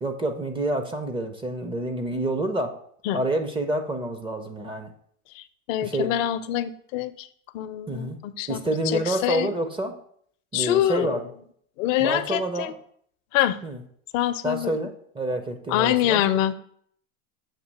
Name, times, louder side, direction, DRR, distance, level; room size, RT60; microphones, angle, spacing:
voice 1, 0.0-2.7 3.1-4.9 5.8-6.1 7.9-8.2 8.5-9.9 10.5-11.2 12.0-12.7 13.6-13.8 14.4-16.2, right 1 dB, 15° right, 6 dB, 0.4 m, -28 dB
voice 2, 5.3-7.3 7.5-9.5 10.5-11.2 11.8-12.7 13.3-13.6 14.1-14.7 15.7-16.5, left 12 dB, 70° left, 12 dB, 0.6 m, -25 dB
7.3 x 2.7 x 5.2 m, 0.63 s
supercardioid pair, 110°, 40 cm